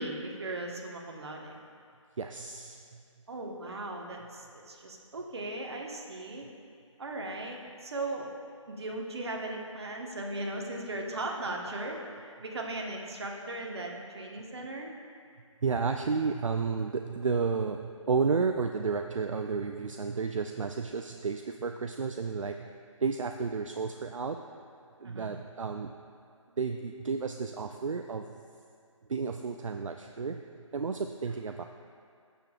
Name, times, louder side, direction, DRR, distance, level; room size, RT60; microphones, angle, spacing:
voice 1, 0.0-1.6 3.3-6.4 7.0-8.3 8.7-14.9 25.0-25.3, right 2 dB, 50° right, 0 dB, 1.2 m, -38 dB
voice 2, 2.2-3.0 15.6-22.7 23.0-24.4 25.0-26.0 26.6-28.3 29.1-30.4 30.7-31.6, right 5 dB, 70° right, 5 dB, 0.4 m, -32 dB
15.5 x 7.0 x 2.4 m, 2.3 s
figure-of-eight pair, 155°, 17 cm